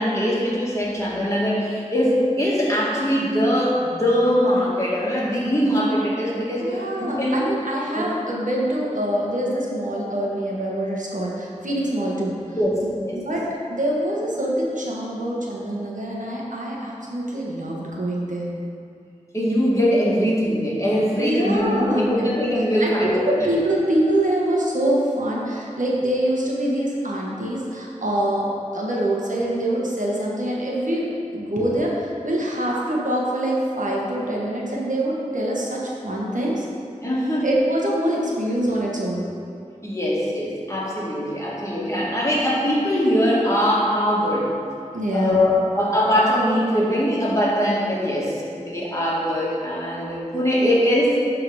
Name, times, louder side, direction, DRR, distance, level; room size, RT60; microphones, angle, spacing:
voice 1, 0.0-7.4 8.0-8.1 12.5-13.2 19.3-23.5 37.0-37.5 39.8-44.5 45.1-51.2, equal, 25° left, -6 dB, 2.1 m, -22 dB
voice 2, 6.6-12.3 12.8-13.4 13.7-18.5 21.2-22.0 22.8-28.5 28.7-31.1 31.3-36.6 37.4-39.3 44.9-45.4, right 1 dB, 80° right, -4 dB, 1.3 m, -25 dB
11.5 x 3.9 x 4.8 m, 2.4 s
wide cardioid pair, 45°, 13 cm